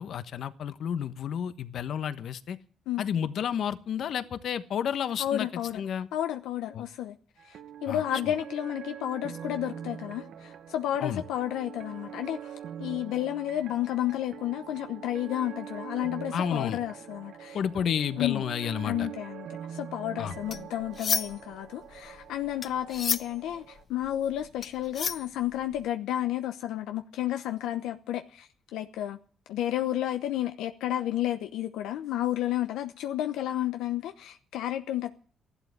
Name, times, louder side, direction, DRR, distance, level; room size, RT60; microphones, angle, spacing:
voice 1, 0.0-2.6 3.0-5.5 5.7-6.1 6.7-6.9 7.9-8.0 11.0-11.2 16.3-16.8 17.5-19.1 20.2-20.3, left 8 dB, 65° left, 1.2 m, -31 dB
voice 2, 5.2-5.8 6.1-7.2 7.4-17.6 18.2-18.4 18.8-29.2 29.5-35.1, left 12 dB, 90° left, 0.9 m, -31 dB
sound 1, 7.4-23.8, right 9 dB, 75° right, 1.3 m, -43 dB
sound 2, 20.3-21.5 21.9-25.9, left 6 dB, 45° left, 0.7 m, -32 dB
14.0 x 11.5 x 8.7 m
cardioid pair, 90°, 0 cm